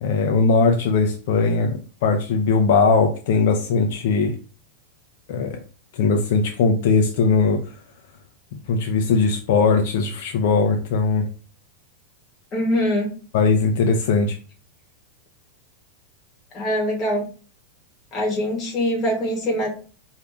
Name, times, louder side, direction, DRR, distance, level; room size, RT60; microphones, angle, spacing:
voice 1, 0.0-4.4 5.3-5.6 5.9-7.8 8.7-11.2 13.3-14.4, left 4 dB, 50° left, 3 dB, 0.5 m, -19 dB
voice 2, 12.5-13.1 16.5-17.2 18.1-19.7, equal, 20° left, -1 dB, 1.3 m, -23 dB
4.8 x 2.7 x 3.5 m, 0.38 s
supercardioid pair, 180°, 0 cm